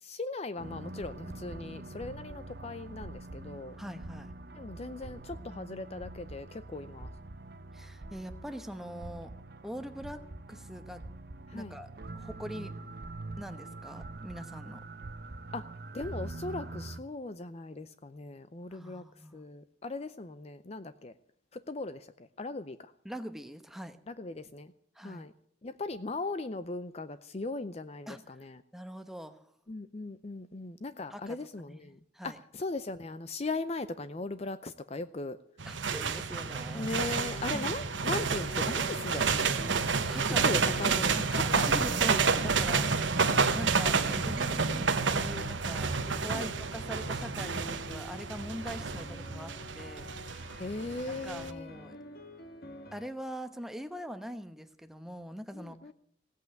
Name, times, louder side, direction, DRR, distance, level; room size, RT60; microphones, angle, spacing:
voice 1, 0.0-3.8 4.5-7.1 11.5-11.8 15.5-15.7 15.9-19.0 19.3-21.1 21.5-22.9 24.1-24.7 25.0-25.3 25.6-28.6 29.7-35.4 36.7-39.9 40.4-41.2 41.5-41.7 42.6-42.9 46.3-46.5 50.6-51.7 55.5-55.9, left 3 dB, 35° left, 12 dB, 0.5 m, -39 dB
sound 1, 0.6-17.0, right 2 dB, 55° right, 0.8 m, -44 dB
voice 2, 3.8-4.3 7.7-9.3 9.6-11.0 11.5-11.9 12.1-12.7 13.4-14.8 18.7-19.4 23.0-24.0 24.9-25.3 28.1-28.2 28.7-29.4 31.1-31.4 31.7-32.4 35.7-36.9 37.5-37.8 39.7-42.9 43.5-50.1 51.1-52.0 52.9-55.8, equal, ahead, 8 dB, 0.9 m, -43 dB
sound 2, 35.6-51.5, right 5 dB, 75° right, 1.1 m, -30 dB
sound 3, 37.0-53.1, left 1 dB, 55° left, 1.5 m, -48 dB
16.5 x 8.3 x 9.1 m, 0.68 s
head